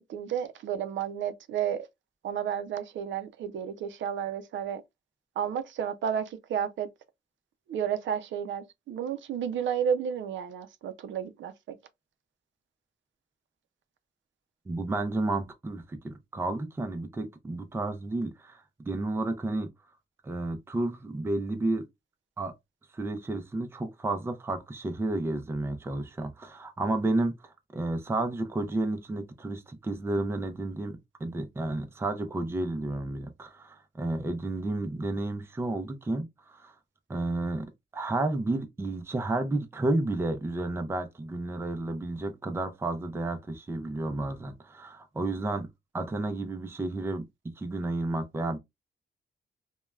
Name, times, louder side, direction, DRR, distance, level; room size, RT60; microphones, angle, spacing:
voice 1, 0.0-1.9 2.2-4.8 5.4-6.9 7.7-11.5, right 8 dB, 90° right, 0.4 m, -32 dB
voice 2, 14.7-19.7 20.2-21.9 22.4-22.5 22.9-36.7 37.1-37.7 37.9-45.7 45.9-47.2 47.6-48.6, right 2 dB, 15° right, 0.4 m, -31 dB
3.1 x 2.2 x 2.2 m
wide cardioid pair, 170°, 19 cm